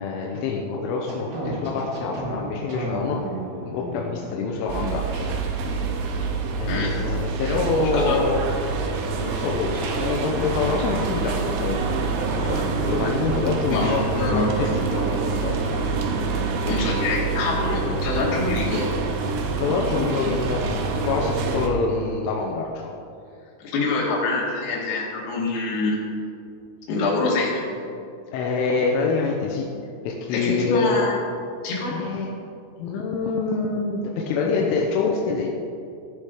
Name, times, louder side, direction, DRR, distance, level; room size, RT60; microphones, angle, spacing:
voice 1, 0.0-3.2 3.7-5.3 6.6-8.5 9.1-12.0 12.4-15.8 19.5-22.9 28.3-29.7 30.0-31.0 31.9-32.3 32.8-35.5, left 4 dB, 85° left, 0 dB, 3.3 m, -26 dB
sound 1, 1.1-5.2, right 1 dB, 90° right, 0.9 m, -33 dB
sound 2, 4.7-21.7, right 4 dB, 75° right, 2.9 m, -26 dB
voice 2, 13.7-14.5 16.7-18.9 23.6-26.0 26.9-27.8 30.3-31.2 31.6-31.9, left 3 dB, 60° left, -4 dB, 3.9 m, -25 dB
15.5 x 6.6 x 5.0 m, 2.5 s
omnidirectional pair, 5.6 m